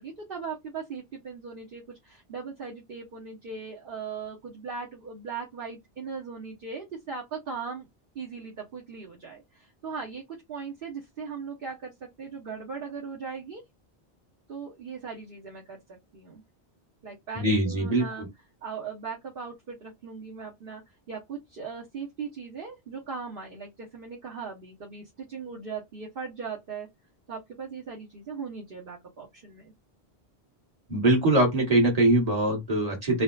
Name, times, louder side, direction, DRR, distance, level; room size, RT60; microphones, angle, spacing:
voice 1, 0.0-7.9 8.1-13.6 14.5-16.4 17.0-18.3 18.6-20.8 21.1-26.9 27.3-29.7, right 5 dB, 60° right, 1.0 m, -39 dB
voice 2, 17.4-18.3 30.9-33.2, right 1 dB, 35° right, 1.6 m, -23 dB
3.8 x 2.2 x 2.2 m
omnidirectional pair, 1.1 m